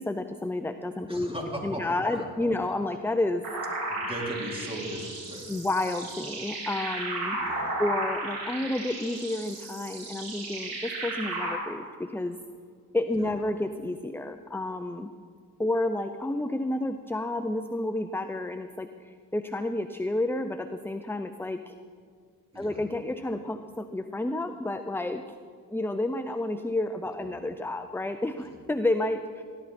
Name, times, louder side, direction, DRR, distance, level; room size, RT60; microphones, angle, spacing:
voice 1, 0.0-1.3 1.6-3.4 5.5-7.4 7.8-12.4 12.9-15.1 15.6-21.7 22.6-25.3 25.7-29.4, left 2 dB, 5° left, 9 dB, 0.6 m, -30 dB
voice 2, 1.1-2.7 3.9-5.5 7.3-7.8 13.2-13.4 22.5-22.8 28.4-28.6, equal, 15° right, -2 dB, 4.3 m, -38 dB
sound 1, 3.4-11.5, right 2 dB, 75° right, 4.6 m, -34 dB
17.5 x 12.0 x 4.3 m, 2.1 s
supercardioid pair, 55°, 37 cm